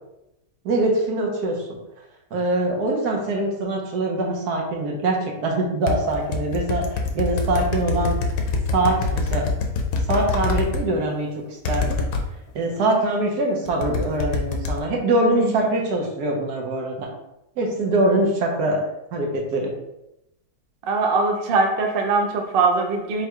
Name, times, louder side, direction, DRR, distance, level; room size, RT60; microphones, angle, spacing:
voice 1, 0.6-1.6 2.3-6.8 7.1-8.2 8.7-9.5 10.1-12.0 12.5-17.1 17.6-19.7, right 2 dB, 80° right, 0 dB, 1.4 m, -23 dB
sound 1, 5.9-10.8 11.6-12.2 13.7-14.8, left 4 dB, 70° left, 1.0 m, -24 dB
voice 2, 15.3-15.7 20.9-23.3, right 3 dB, 55° right, 2 dB, 0.6 m, -21 dB
4.5 x 3.7 x 2.2 m, 0.87 s
omnidirectional pair, 1.7 m